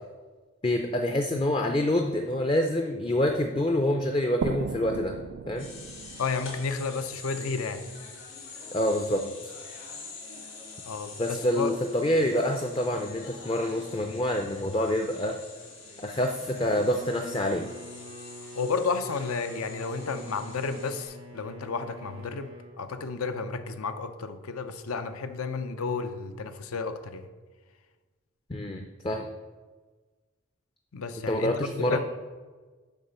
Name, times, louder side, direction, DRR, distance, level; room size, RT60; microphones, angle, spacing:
voice 1, 0.6-5.2 5.5-5.7 8.7-9.5 11.2-15.4 16.0-17.7 28.5-29.3 31.3-32.0, left 1 dB, 25° left, 5 dB, 0.4 m, -27 dB
sound 1, 4.4-7.9, right 6 dB, 65° right, 0.3 m, -37 dB
sound 2, 5.6-21.1, left 4 dB, 65° left, 2.5 m, -46 dB
voice 2, 6.2-7.8 10.8-11.7 18.6-22.5 22.8-27.2 30.9-32.0, left 4 dB, 85° left, 9 dB, 0.6 m, -32 dB
Bowed string instrument, 16.5-22.8, equal, 85° right, 1.2 m, -47 dB
7.1 x 5.8 x 5.5 m, 1.4 s
head